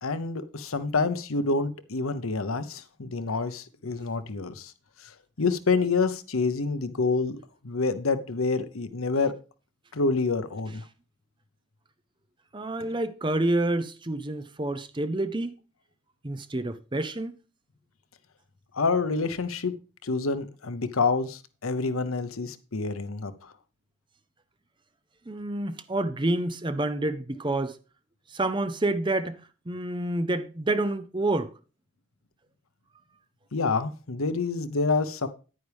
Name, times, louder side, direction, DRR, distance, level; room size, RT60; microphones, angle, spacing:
voice 1, 0.0-4.7 5.4-9.3 9.9-10.8 18.7-19.7 20.0-23.5 33.5-35.3, left 4 dB, 85° left, 0.9 m, -27 dB
voice 2, 12.5-15.5 16.2-17.3 25.3-27.8 28.3-29.4 29.7-31.5, right 2 dB, 20° right, 0.6 m, -28 dB
9.5 x 9.4 x 3.4 m
head